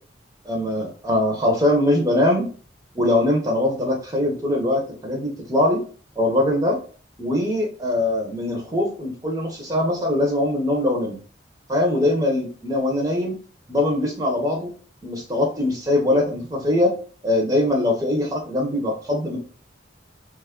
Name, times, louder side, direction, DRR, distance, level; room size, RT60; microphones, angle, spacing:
voice 1, 0.4-2.5 2.9-5.8 6.2-6.8 7.2-11.2 11.7-13.3 13.7-14.7 15.0-16.9 17.2-19.4, left 1 dB, 20° right, 1 dB, 0.6 m, -22 dB
3.0 x 2.3 x 3.5 m, 0.40 s
head